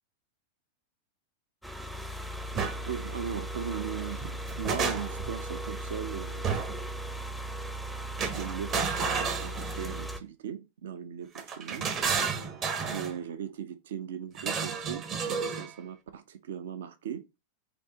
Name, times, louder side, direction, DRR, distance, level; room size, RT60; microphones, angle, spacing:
sound 1, 1.6-10.2, right 1 dB, 5° right, 0.5 m, -37 dB
sound 2, 2.5-2.8 4.2-5.3 6.4-6.9 8.2-10.0 11.3-13.1 14.4-15.7, right 5 dB, 30° right, 0.8 m, -31 dB
voice 1, 2.9-6.6 8.3-11.9 12.9-17.2, right 8 dB, 60° right, 0.5 m, -38 dB
5.2 x 3.0 x 2.8 m
figure-of-eight pair, 90°, 0 cm